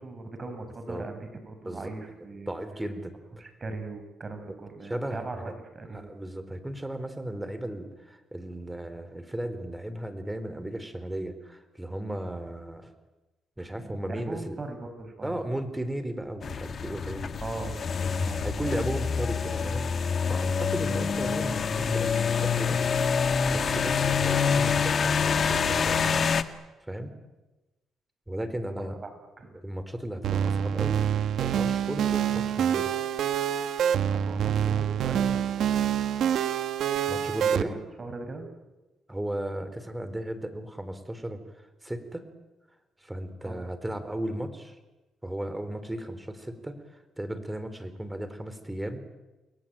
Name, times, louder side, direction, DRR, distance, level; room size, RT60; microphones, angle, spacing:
voice 1, 0.0-2.6 3.4-6.1 13.7-15.3 17.4-17.8 18.2-18.7 28.8-29.5 34.1-36.0 37.4-38.5 43.4-43.6, right 3 dB, 30° right, 7 dB, 6.3 m, -39 dB
voice 2, 2.5-3.2 4.5-4.6 4.8-5.5 5.9-12.9 13.6-14.6 15.2-17.4 18.0-18.1 18.4-19.9 20.3-22.8 23.5-26.2 26.8-27.1 28.3-29.0 29.5-33.1 37.1-37.8 39.1-41.4 41.8-42.2 43.0-44.8 45.2-49.0, right 1 dB, 10° right, 10 dB, 4.1 m, -35 dB
sound 1, 16.4-26.4, left 6 dB, 50° left, 1.7 m, -26 dB
sound 2, 30.2-37.6, right 9 dB, 70° right, 1.4 m, -26 dB
29.5 x 21.5 x 9.0 m, 1.1 s
cardioid pair, 90°, 0 cm